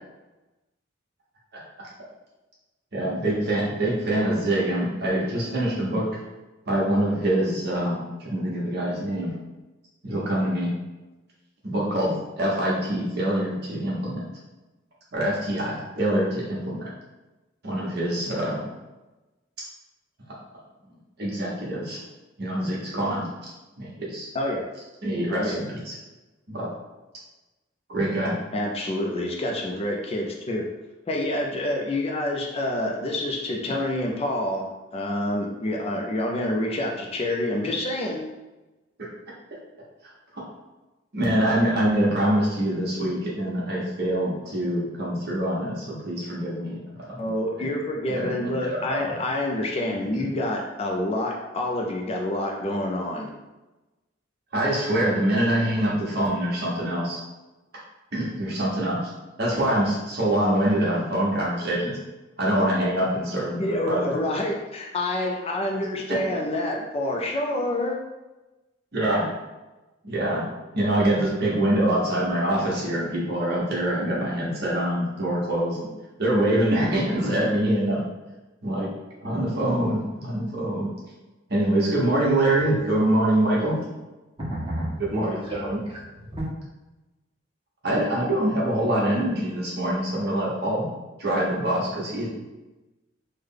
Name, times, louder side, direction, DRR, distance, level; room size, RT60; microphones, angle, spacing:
voice 1, 2.9-6.1 6.7-9.3 10.0-10.8 11.6-14.3 15.1-16.9 17.6-18.6 20.3-20.4 21.2-22.0 22.4-23.3 23.8-24.3 25.0-25.9 26.5-26.7 27.9-28.4 39.0-39.1 40.3-40.4 41.1-46.8 47.1-47.3 47.6-47.7 48.1-49.1 50.1-50.3 54.5-57.2 58.1-59.1 59.4-62.0 62.4-64.2 68.9-69.3 70.0-75.8 76.2-78.0 78.6-78.9 79.2-80.9 81.5-83.8 85.1-85.3 85.6-85.8 87.8-90.9 91.2-92.3, right 1 dB, 55° right, -5 dB, 1.1 m, -25 dB
voice 2, 24.3-24.7 25.3-25.6 28.5-30.7 31.1-38.3 47.2-53.4 63.6-68.0, left 1 dB, 30° left, 0 dB, 0.4 m, -27 dB
voice 3, 84.4-86.5, equal, 30° right, -7 dB, 1.2 m, -31 dB
3.3 x 2.1 x 3.7 m, 1.1 s
head